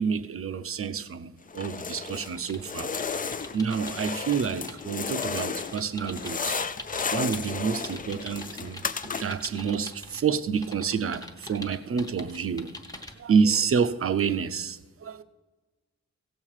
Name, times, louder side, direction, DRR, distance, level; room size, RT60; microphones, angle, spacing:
voice 1, 0.0-2.9 3.5-6.6 7.1-12.7 13.2-15.2, right 6 dB, 50° right, 0.6 m, -28 dB
sound 1, 1.5-2.4 2.6-5.8 6.1-9.5, left 5 dB, 30° left, 0.4 m, -33 dB
sound 2, 2.3-7.5 7.8-10.2 10.6-13.1, left 1 dB, 10° left, 0.9 m, -43 dB
16.5 x 7.3 x 4.8 m
wide cardioid pair, 165°, 30 cm